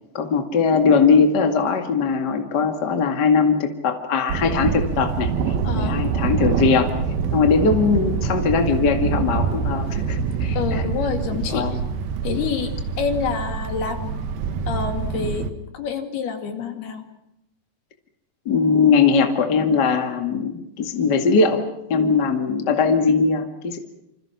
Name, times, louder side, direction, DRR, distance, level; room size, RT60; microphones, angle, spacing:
voice 1, 0.1-6.9 7.3-10.8 11.5-11.8 18.5-21.6 21.9-23.8, left 5 dB, 35° left, 4 dB, 1.8 m, -20 dB
Thunder, 4.3-15.5, right 5 dB, 65° right, 3.0 m, -25 dB
voice 2, 5.6-6.0 10.6-11.7 12.2-12.7 13.0-14.2 14.7-15.5 15.7-17.0, left 6 dB, 70° left, 5 dB, 4.2 m, -27 dB
28.0 x 27.0 x 5.9 m, 0.86 s
omnidirectional pair, 4.9 m